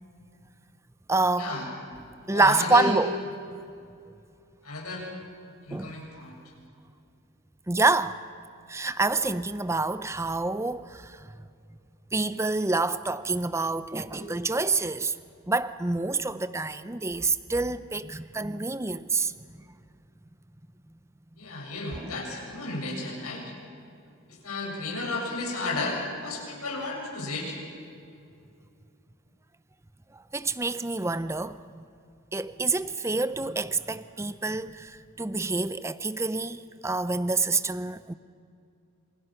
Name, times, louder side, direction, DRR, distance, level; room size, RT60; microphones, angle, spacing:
voice 1, 1.1-1.5 2.3-3.1 5.7-5.9 7.7-8.2 8.7-11.4 12.1-15.2 15.5-19.3 22.0-22.1 30.1-31.6 32.3-38.1, right 3 dB, 10° right, 0.6 m, -27 dB
voice 2, 2.3-2.9 4.6-5.1 5.6-6.4 14.1-14.3 21.4-23.4 24.3-27.6, left 2 dB, 80° left, 7.0 m, -33 dB
27.5 x 26.5 x 6.0 m
head